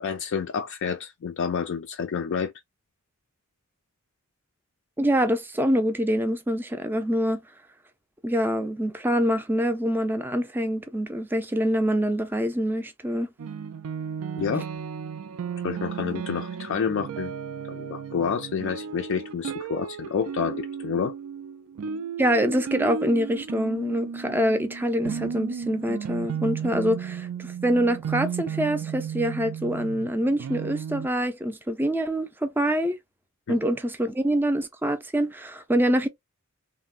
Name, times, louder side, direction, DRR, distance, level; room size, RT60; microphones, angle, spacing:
voice 1, 0.0-2.5 14.4-14.6 15.6-17.3 17.7-21.1 33.5-33.6, left 6 dB, 60° left, 0.3 m, -29 dB
voice 2, 5.0-7.4 8.2-13.3 22.2-33.0 33.5-36.1, equal, 10° right, 0.4 m, -25 dB
sound 1, 13.4-31.1, right 7 dB, 75° right, 0.4 m, -34 dB
3.2 x 2.1 x 2.4 m
head